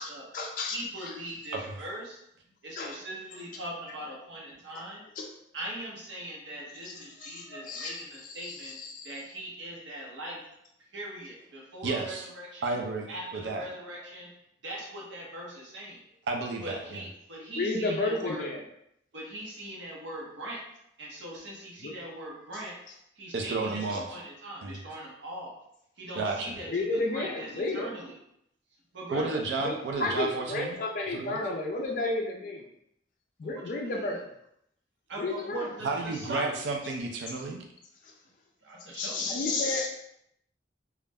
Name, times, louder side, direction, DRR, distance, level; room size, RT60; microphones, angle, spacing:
voice 1, 0.0-1.1 2.8-3.0 5.2-5.3 6.8-6.9 7.2-9.1 17.6-18.6 21.8-21.9 23.9-24.0 26.7-27.9 29.6-32.6 33.4-34.2 35.2-35.7 38.0-38.1 38.9-39.9, left 2 dB, 45° left, 0 dB, 0.3 m, -32 dB
voice 2, 0.6-2.2 2.6-5.0 5.5-8.8 9.0-10.4 10.9-12.8 13.1-14.3 14.6-16.0 16.6-18.5 19.1-20.6 21.0-22.8 23.2-25.6 26.0-28.2 28.9-29.4 33.4-34.2 35.1-36.6 38.6-39.4, right 1 dB, 85° right, -3 dB, 0.8 m, -41 dB
voice 3, 11.8-12.3 12.6-13.7 16.3-17.0 23.3-24.2 24.6-24.8 26.2-26.6 29.1-30.8 31.1-31.4 35.8-37.6, right 3 dB, 70° right, 2 dB, 0.4 m, -32 dB
2.3 x 2.0 x 3.3 m, 0.75 s
head